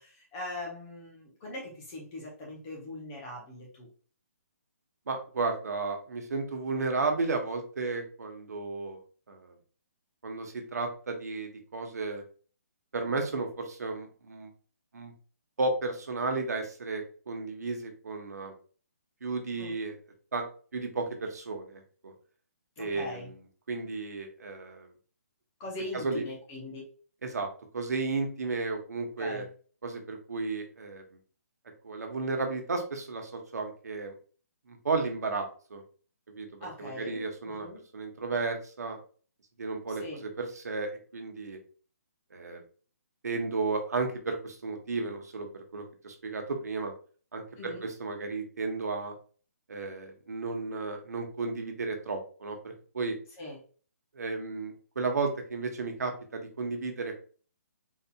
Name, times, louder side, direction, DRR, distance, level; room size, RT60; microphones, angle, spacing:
voice 1, 0.0-3.9 19.6-19.7 22.8-23.3 25.6-26.8 29.2-29.5 36.6-37.8 39.9-40.2 47.6-47.8 53.4-53.6, left 1 dB, 10° left, -2 dB, 0.5 m, -41 dB
voice 2, 5.1-9.0 9.3-9.5 10.2-12.2 12.9-14.5 14.9-15.1 15.6-18.5 19.2-20.0 20.3-20.4 20.7-22.1 22.8-24.9 25.9-26.2 27.2-27.5 27.7-29.4 29.8-31.0 31.8-34.1 34.7-35.8 36.3-37.7 37.9-39.0 39.6-41.6 42.3-42.6 43.2-45.5 45.7-46.9 47.3-49.1 49.7-53.2 54.1-57.1, right 3 dB, 80° right, 4 dB, 1.0 m, -33 dB
4.0 x 2.8 x 2.3 m, 0.40 s
hypercardioid pair, 180°, 9 cm